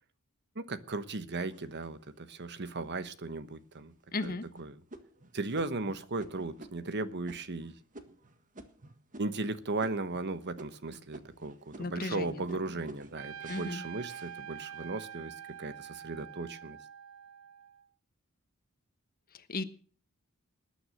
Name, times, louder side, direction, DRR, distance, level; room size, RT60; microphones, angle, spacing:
voice 1, 0.5-3.9 4.2-4.3 4.6-4.7 5.3-7.8 9.2-16.8, right 3 dB, 55° right, 1.1 m, -36 dB
sound 1, 1.4-2.2 2.8-2.9 3.4-3.7 4.2-9.5 9.8-10.3 10.6-14.9 15.4-15.9, right 2 dB, 40° right, 1.6 m, -51 dB
voice 2, 4.1-4.5 11.8-12.4 12.7-12.9 13.5-13.8 19.3-19.6, left 3 dB, 45° left, 1.2 m, -36 dB
Trumpet, 13.2-17.9, right 9 dB, 75° right, 0.6 m, -46 dB
20.0 x 9.5 x 6.4 m
head